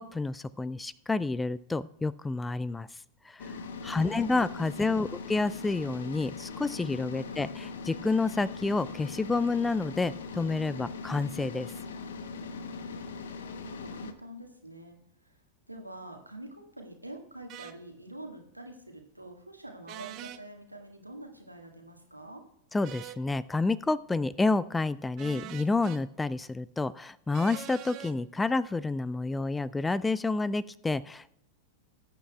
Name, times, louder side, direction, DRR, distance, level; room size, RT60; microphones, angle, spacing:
voice 1, 0.0-2.9 3.8-11.7 22.7-31.4, left 3 dB, 10° left, 20 dB, 0.3 m, -29 dB
sound 1, 3.4-14.1, left 4 dB, 60° left, 0.9 m, -40 dB
voice 2, 4.7-5.2 7.2-7.5 12.5-15.0 15.2-15.3 15.7-22.4, right 1 dB, 85° right, 2 dB, 1.7 m, -47 dB
sound 2, 17.5-17.7 19.9-20.4 22.8-23.2 25.2-26.0 27.3-28.1, right 12 dB, 40° right, 0.7 m, -43 dB
20.0 x 8.7 x 2.3 m, 0.74 s
figure-of-eight pair, 90°, 0 cm